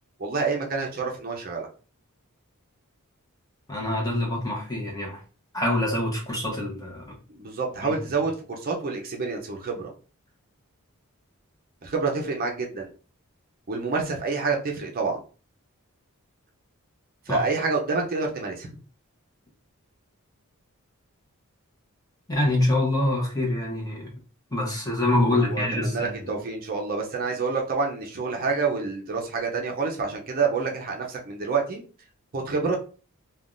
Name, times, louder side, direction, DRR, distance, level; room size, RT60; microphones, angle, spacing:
voice 1, 0.2-1.7 7.3-9.9 11.8-12.9 13.7-15.2 17.3-18.7 25.2-31.8 32.3-32.8, right 4 dB, 40° right, 1 dB, 0.5 m, -28 dB
voice 2, 3.7-5.2 5.5-7.2 7.8-7.9 17.3-17.4 22.3-24.0 24.5-26.3, left 1 dB, 15° left, -2 dB, 0.9 m, -25 dB
3.4 x 2.2 x 2.5 m, 0.37 s
head